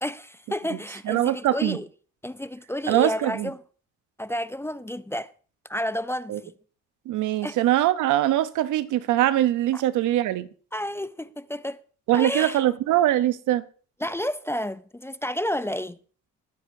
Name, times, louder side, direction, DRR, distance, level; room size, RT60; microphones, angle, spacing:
voice 1, 0.0-1.9 2.2-3.6 4.2-5.3 5.7-6.5 7.4-7.6 9.7-9.8 10.7-11.8 12.1-12.6 14.0-16.0, left 1 dB, 10° left, 0.4 m, -30 dB
voice 2, 1.1-1.8 2.9-3.5 6.3-6.4 7.1-10.5 12.1-13.7, right 13 dB, 85° right, 0.8 m, -22 dB
20.0 x 9.6 x 2.7 m
cardioid pair, 90°, 30 cm